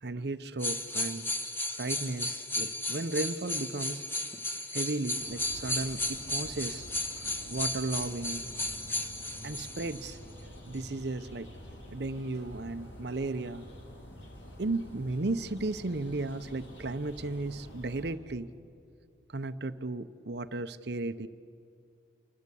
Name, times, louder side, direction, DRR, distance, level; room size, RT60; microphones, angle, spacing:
voice 1, 0.0-1.3 1.8-4.1 4.7-6.9 7.2-8.4 9.4-10.2 10.7-11.5 11.9-13.7 14.6-18.5 19.3-21.3, right 2 dB, 60° right, 11 dB, 0.8 m, -35 dB
sound 1, 0.6-10.2 10.7-10.8, left 1 dB, 10° left, 1.3 m, -34 dB
sound 2, 5.2-18.1, equal, 85° left, 4.4 m, -48 dB
28.0 x 24.0 x 8.4 m, 2.5 s
head